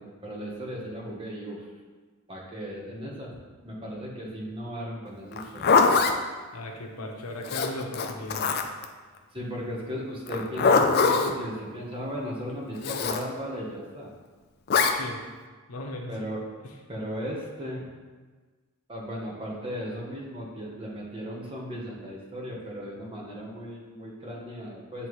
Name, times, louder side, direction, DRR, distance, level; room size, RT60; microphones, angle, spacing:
voice 1, 0.0-1.7 2.3-3.4 3.6-6.0 9.3-14.1 16.1-16.4 16.9-17.9 18.9-25.1, equal, 25° right, -3 dB, 1.1 m, -36 dB
Zipper (clothing), 5.3-6.2 7.5-8.9 10.3-11.3 12.8-13.2 14.7-15.0, left 4 dB, 45° left, 0.4 m, -22 dB
voice 2, 6.5-8.5 14.9-15.2 15.7-16.3, left 1 dB, 90° left, 1 dB, 0.8 m, -37 dB
8.9 x 3.4 x 3.1 m, 1.4 s
head